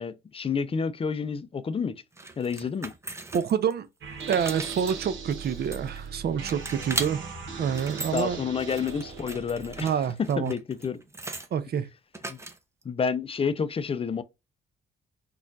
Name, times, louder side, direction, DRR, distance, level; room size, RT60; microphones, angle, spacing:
voice 1, 0.0-2.0 2.4-2.9 8.1-9.9 10.2-11.0 12.3-12.4 12.8-14.2, left 6 dB, 30° left, 0.5 m, -29 dB
sound 1, 2.2-3.7 4.1-6.1 6.5-7.1 7.6-8.2 8.6-11.5 12.1-12.8, right 2 dB, 15° right, 0.6 m, -38 dB
voice 2, 3.3-3.9 4.3-7.2 7.6-8.4 9.8-10.5 11.5-11.9, right 8 dB, 55° right, 0.6 m, -27 dB
sound 2, 4.0-9.8, right 5 dB, 75° right, 1.1 m, -39 dB
4.2 x 2.4 x 2.6 m
cardioid pair, 90°, 20 cm